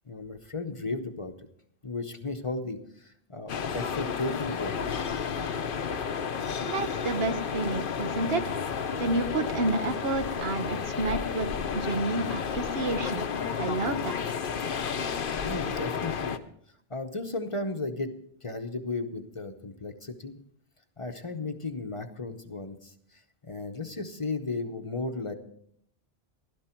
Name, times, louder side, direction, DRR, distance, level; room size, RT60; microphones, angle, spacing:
voice 1, 0.1-1.3 1.8-4.7 15.4-16.4 16.9-18.1 18.4-20.4 21.0-25.3, left 3 dB, 35° left, 7 dB, 0.9 m, -35 dB
sound 1, 3.5-16.4, left 6 dB, 60° left, 0.9 m, -32 dB
voice 2, 6.7-8.5 9.0-11.5 11.7-14.2, right 2 dB, 75° right, 9 dB, 1.2 m, -30 dB
15.5 x 12.5 x 4.5 m, 0.69 s
omnidirectional pair, 1.0 m